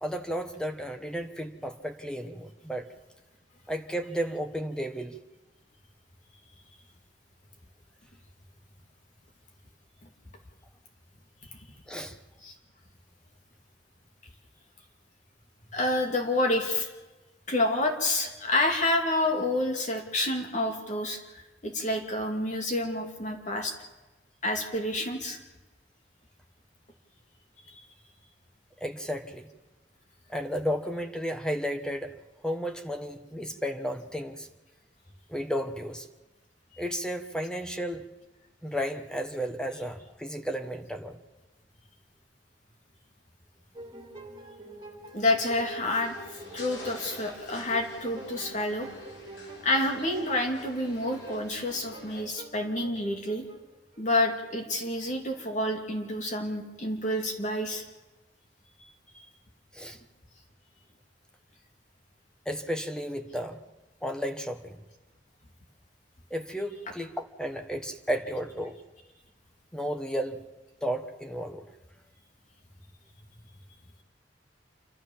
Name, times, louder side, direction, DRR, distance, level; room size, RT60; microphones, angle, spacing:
voice 1, 0.0-2.9 3.7-5.2 11.9-12.2 28.8-29.5 30.3-32.2 32.4-34.5 35.3-36.1 36.8-38.1 38.6-41.2 59.7-60.0 62.4-63.6 64.0-64.8 66.3-68.8 69.7-70.4 70.8-71.7, equal, 5° left, 6 dB, 1.3 m, -33 dB
voice 2, 15.7-16.9 17.5-23.7 24.4-25.4 45.1-46.2 46.5-48.9 49.6-53.4 54.0-57.8 59.1-59.3, left 1 dB, 45° left, 3 dB, 2.5 m, -28 dB
sound 1, 43.8-54.2, right 2 dB, 25° right, 2.6 m, -47 dB
sound 2, 46.0-52.2, left 1 dB, 75° left, 4.5 m, -47 dB
28.5 x 12.5 x 7.3 m, 1.1 s
head